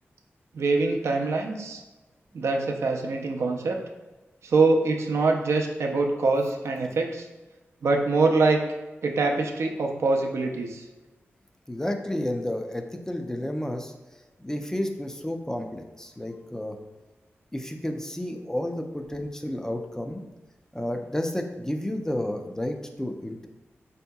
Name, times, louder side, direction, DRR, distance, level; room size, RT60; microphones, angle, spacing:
voice 1, 0.5-1.8 2.3-3.8 4.4-7.3 7.8-8.6 9.0-10.8, right 3 dB, 75° right, 2 dB, 0.4 m, -24 dB
voice 2, 11.7-13.9 14.4-16.8 17.5-20.2 20.7-23.5, left 1 dB, 10° left, 4 dB, 0.3 m, -31 dB
4.3 x 2.7 x 2.2 m, 1.1 s
wide cardioid pair, 90°, 5 cm